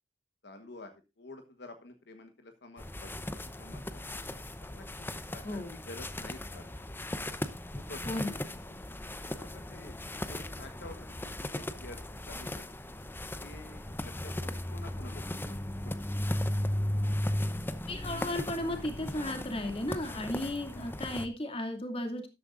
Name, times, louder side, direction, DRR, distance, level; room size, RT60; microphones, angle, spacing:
voice 1, 0.4-3.2 3.6-4.1 4.7-6.8 7.7-8.2 8.7-8.8 9.4-10.0 10.3-12.9 13.4-15.9, left 2 dB, 60° left, 7 dB, 1.3 m, -50 dB
sound 1, 2.8-21.3, left 1 dB, 10° left, 0.7 m, -37 dB
voice 2, 5.4-5.8 8.1-8.4 17.9-22.3, left 1 dB, 30° left, 5 dB, 2.6 m, -35 dB
13.0 x 12.0 x 2.5 m, 0.26 s
head